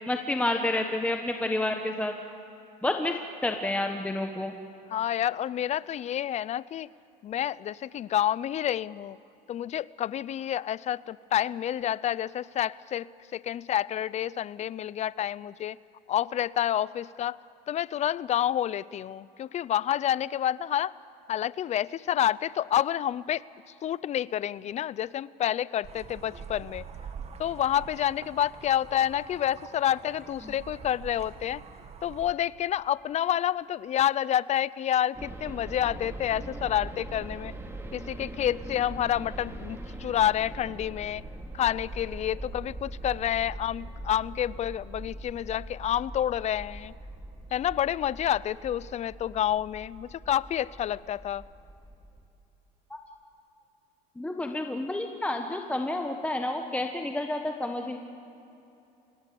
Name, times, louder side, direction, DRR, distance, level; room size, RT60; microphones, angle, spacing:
voice 1, 0.1-2.1 2.8-4.6 54.2-58.0, left 1 dB, 5° left, 4 dB, 1.3 m, -29 dB
voice 2, 4.9-6.9 7.2-9.2 9.5-13.1 13.3-15.8 16.1-17.4 17.7-20.9 21.3-23.4 23.8-26.8 27.4-31.6 32.0-37.5 37.9-41.2 41.5-46.9 47.5-51.4, left 11 dB, 40° left, 20 dB, 0.5 m, -29 dB
sound 1, 25.8-32.3, right 6 dB, 35° right, 1.8 m, -45 dB
sound 2, 35.1-52.2, right 2 dB, 15° right, 2.3 m, -42 dB
26.0 x 19.0 x 7.0 m, 2.9 s
cardioid pair, 110°, 18 cm